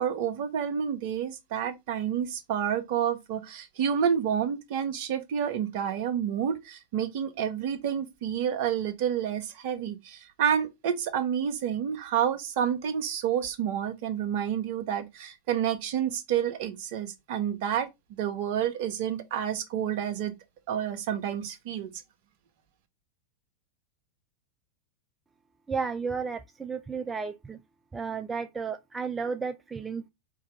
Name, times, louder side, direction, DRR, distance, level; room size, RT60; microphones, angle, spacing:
voice 1, 0.0-20.3 20.7-22.0, right 9 dB, 50° right, 0.9 m, -29 dB
voice 2, 25.7-27.6 27.9-30.1, right 5 dB, 15° right, 0.3 m, -33 dB
4.7 x 2.8 x 3.1 m
figure-of-eight pair, 90°, 0 cm